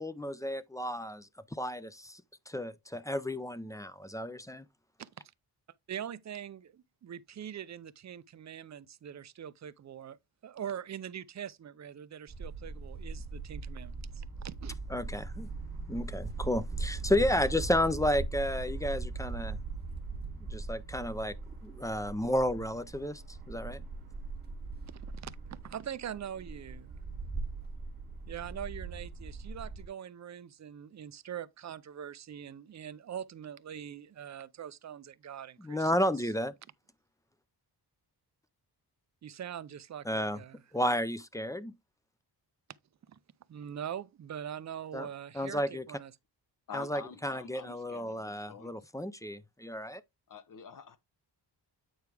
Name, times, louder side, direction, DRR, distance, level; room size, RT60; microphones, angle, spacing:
voice 1, 0.0-4.6 14.9-15.5 15.9-19.6 20.5-21.4 21.6-23.8 35.6-36.5 40.1-40.4 40.7-41.7 44.9-45.1 45.3-45.8 46.7-50.0, left 1 dB, 10° left, 0.4 m, -32 dB
voice 2, 5.9-10.2 10.4-14.8 24.9-26.9 28.3-35.9 36.2-36.3 39.2-40.6 43.1-43.2 43.5-46.1, right 9 dB, 45° right, 0.5 m, -43 dB
sound 1, 12.3-29.9, right 3 dB, 25° right, 2.1 m, -40 dB
voice 3, 46.7-48.9 50.3-51.0, left 5 dB, 50° left, 1.1 m, -47 dB
8.8 x 4.6 x 3.3 m
wide cardioid pair, 150°, 41 cm